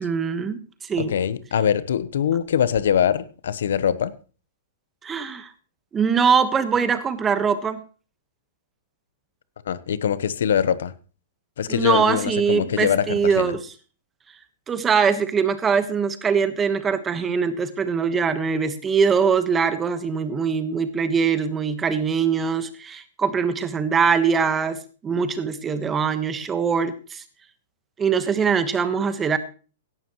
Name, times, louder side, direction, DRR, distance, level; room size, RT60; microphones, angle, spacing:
voice 1, 0.0-1.1 5.0-5.5 5.9-7.8 11.7-13.6 14.7-27.2 28.0-29.4, right 6 dB, 15° right, 11 dB, 1.3 m, -22 dB
voice 2, 1.0-4.1 9.7-10.9 11.6-13.5, left 8 dB, 75° left, 16 dB, 0.9 m, -23 dB
17.0 x 11.5 x 3.1 m, 0.37 s
hypercardioid pair, 140°, 0 cm